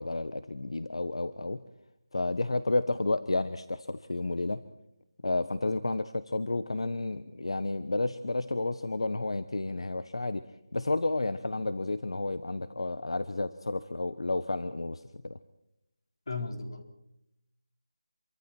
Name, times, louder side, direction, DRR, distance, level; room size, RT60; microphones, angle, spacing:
voice 1, 0.0-1.6 2.1-4.6 5.2-10.4 10.7-15.4, left 2 dB, 75° left, 12 dB, 1.2 m, -31 dB
voice 2, 16.3-16.9, left 3 dB, 50° left, 4 dB, 4.2 m, -36 dB
27.0 x 24.0 x 4.5 m, 0.84 s
figure-of-eight pair, 175°, 3 cm